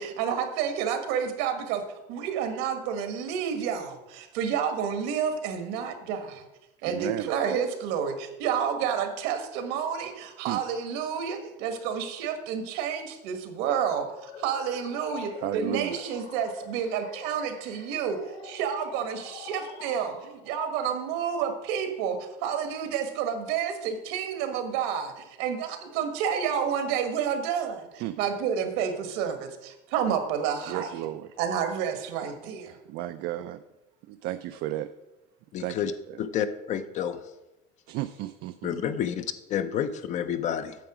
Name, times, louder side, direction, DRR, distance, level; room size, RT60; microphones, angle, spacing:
voice 1, 0.0-1.8 2.1-6.4 6.8-18.2 18.4-30.9 31.4-32.8, right 7 dB, 80° right, 7 dB, 1.4 m, -30 dB
voice 2, 6.8-7.3 10.5-10.6 15.4-16.0 28.0-28.2 30.7-31.3 32.9-33.6 34.1-34.9 35.6-36.2 37.9-38.8, right 13 dB, 55° right, 9 dB, 0.4 m, -33 dB
sound 1, 14.1-20.6, left 5 dB, 85° left, 2.2 m, -45 dB
voice 3, 35.5-35.9 36.2-37.2 38.6-40.8, left 9 dB, 35° left, 12 dB, 0.5 m, -29 dB
9.2 x 7.0 x 4.8 m, 0.98 s
cardioid pair, 165°, 20 cm